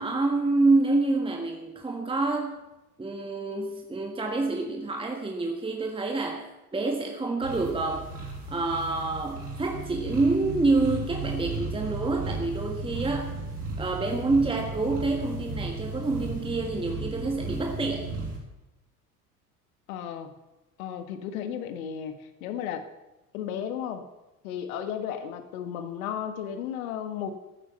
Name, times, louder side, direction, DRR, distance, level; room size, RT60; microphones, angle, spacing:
voice 1, 0.0-2.6 3.0-6.4 6.7-8.1 8.5-13.4 13.8-18.1, right 3 dB, 10° right, 2 dB, 1.5 m, -27 dB
sound 1, 7.4-18.4, right 3 dB, 85° right, 4.1 m, -35 dB
voice 2, 19.9-20.3 20.8-22.9 23.3-24.1 24.4-27.3, left 9 dB, 65° left, 9 dB, 1.6 m, -34 dB
13.5 x 9.8 x 6.9 m, 1.0 s
figure-of-eight pair, 70°, 45 cm